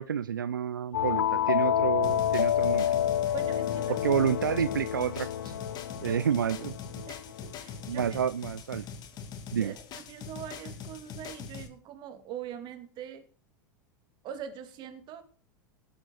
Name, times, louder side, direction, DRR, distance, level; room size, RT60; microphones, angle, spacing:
voice 1, 0.0-2.9 4.0-5.5 6.0-6.7 7.9-8.9 9.5-9.7, right 8 dB, 80° right, 14 dB, 0.6 m, -29 dB
sound 1, 0.9-7.4, left 10 dB, 75° left, 0.6 m, -29 dB
sound 2, 2.0-11.7, left 6 dB, 40° left, 2.3 m, -43 dB
voice 2, 3.3-4.0 6.0-6.2 7.1-8.2 9.5-9.8 10.1-13.2 14.2-15.2, right 9 dB, 45° right, 8 dB, 2.9 m, -42 dB
17.5 x 7.1 x 6.7 m, 0.39 s
figure-of-eight pair, 85°, 11 cm